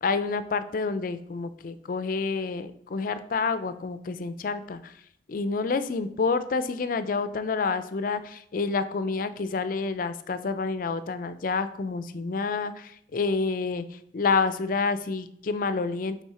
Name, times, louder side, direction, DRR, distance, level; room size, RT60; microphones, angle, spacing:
voice 1, 0.0-4.9 5.3-13.9 14.1-16.2, left 4 dB, 50° left, 12 dB, 0.4 m, -28 dB
8.3 x 3.6 x 4.2 m, 0.70 s
head